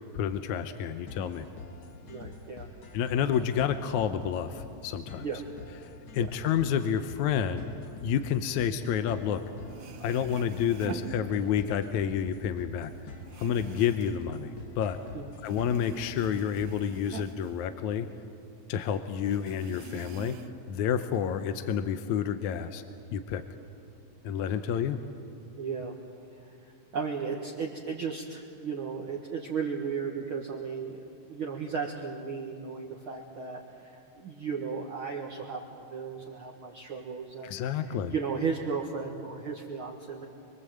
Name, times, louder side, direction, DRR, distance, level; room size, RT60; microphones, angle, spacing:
voice 1, 0.1-1.5 2.9-5.3 6.1-7.7 8.0-9.4 10.0-12.9 13.4-15.0 15.4-18.1 18.7-20.4 20.7-22.8 23.1-23.4 24.2-25.0 37.4-38.1, left 8 dB, 75° left, 9 dB, 2.0 m, -29 dB
sound 1, 1.1-17.0, left 4 dB, 45° left, 2.3 m, -47 dB
voice 2, 2.1-2.7 5.2-5.4 6.2-6.3 15.1-15.3 25.6-26.0 26.3-40.2, right 5 dB, 50° right, -1 dB, 1.9 m, -35 dB
sound 2, 9.4-9.5 9.6-11.9 12.2-15.1 15.4-18.4 18.7-18.8 19.2-20.7 21.1-21.9, right 7 dB, 65° right, 1.9 m, -45 dB
25.5 x 24.0 x 7.8 m, 2.5 s
omnidirectional pair, 3.7 m